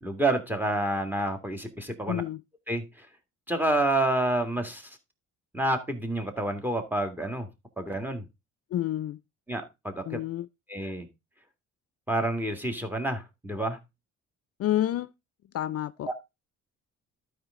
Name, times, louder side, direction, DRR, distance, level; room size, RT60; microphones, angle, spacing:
voice 1, 0.0-2.2 2.7-3.1 3.5-5.0 5.5-7.5 7.8-8.3 9.5-10.2 10.7-11.1 12.1-13.8 16.1-16.2, right 1 dB, 5° right, 1.9 m, -29 dB
voice 2, 2.1-2.4 8.7-9.2 10.1-10.5 14.6-15.1 15.5-16.1, left 12 dB, 55° left, 0.4 m, -29 dB
12.0 x 4.8 x 3.7 m
cardioid pair, 90°, 30 cm